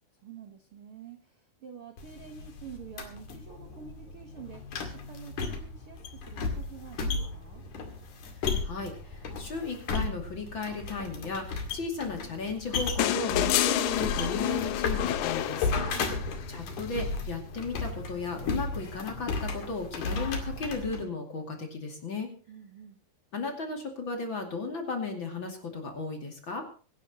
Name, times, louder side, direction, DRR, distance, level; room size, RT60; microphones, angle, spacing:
voice 1, 0.2-7.6 15.9-16.4 22.5-23.0, right 8 dB, 65° right, 6 dB, 1.3 m, -48 dB
sound 1, 2.0-21.0, left 4 dB, 55° left, 3.5 m, -35 dB
voice 2, 8.6-15.7 16.5-22.3 23.3-26.6, left 4 dB, 35° left, 2 dB, 2.7 m, -35 dB
sound 2, 13.0-16.3 17.8-17.9, left 13 dB, 85° left, 1.7 m, -29 dB
24.5 x 11.5 x 2.9 m, 0.39 s
omnidirectional pair, 4.4 m